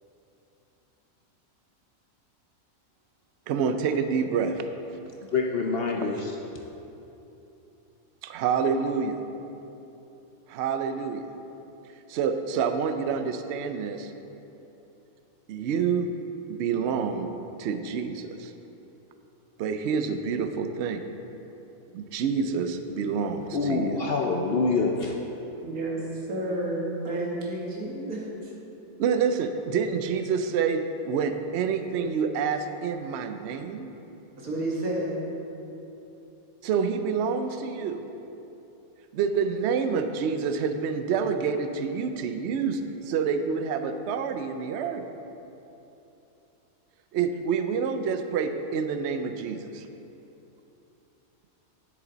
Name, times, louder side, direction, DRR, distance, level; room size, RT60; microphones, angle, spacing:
voice 1, 3.5-4.6 8.2-9.2 10.5-11.2 12.1-14.1 15.5-16.1 16.5-17.3 17.6-18.5 19.6-21.0 21.9-24.0 29.0-33.9 36.6-38.0 39.1-42.8 43.1-45.1 47.1-49.9, right 6 dB, 65° right, 8 dB, 0.7 m, -27 dB
voice 2, 5.2-6.4 23.5-25.1, left 4 dB, 55° left, 1 dB, 0.7 m, -26 dB
voice 3, 25.6-26.0 26.3-28.5 34.4-35.3, right 1 dB, 85° right, -3 dB, 1.9 m, -31 dB
9.8 x 7.4 x 4.0 m, 3.0 s
omnidirectional pair, 1.5 m